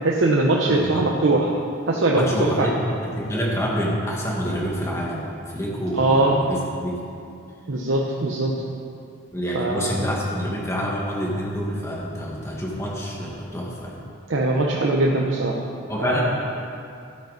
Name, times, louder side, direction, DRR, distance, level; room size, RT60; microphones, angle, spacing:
voice 1, 0.0-1.5 1.9-2.7 6.0-6.4 7.7-8.6 9.5-10.0 14.3-15.6 16.0-16.3, right 2 dB, 75° right, -2 dB, 0.9 m, -21 dB
voice 2, 0.7-1.0 2.2-7.0 9.3-14.0 15.9-16.3, equal, 15° left, -4 dB, 1.8 m, -27 dB
13.5 x 8.7 x 4.1 m, 2.5 s
head